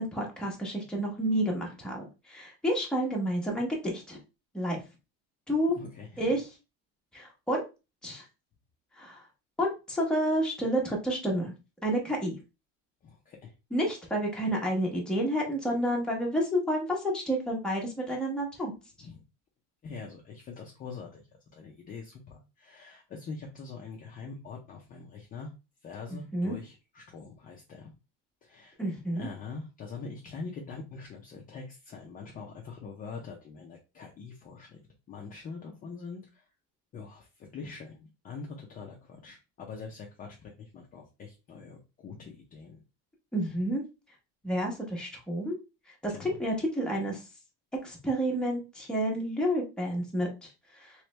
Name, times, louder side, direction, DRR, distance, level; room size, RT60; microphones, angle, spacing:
voice 1, 0.0-4.2 4.5-4.8 5.5-5.8 6.2-6.5 7.1-7.6 8.0-8.3 9.0-9.2 9.6-11.5 11.8-12.3 13.7-18.8 26.3-26.5 28.8-29.3 43.3-43.8 44.4-45.6 46.0-47.2 47.8-50.9, equal, ahead, -2 dB, 0.9 m, -30 dB
voice 2, 5.7-6.3 13.0-13.5 19.0-19.2 19.8-25.5 25.8-27.9 28.4-28.8 29.1-34.8 35.1-36.5 36.9-42.8 46.1-46.4, left 4 dB, 25° left, 0 dB, 0.5 m, -44 dB
3.2 x 3.1 x 3.2 m, 0.29 s
cardioid pair, 155°, 32 cm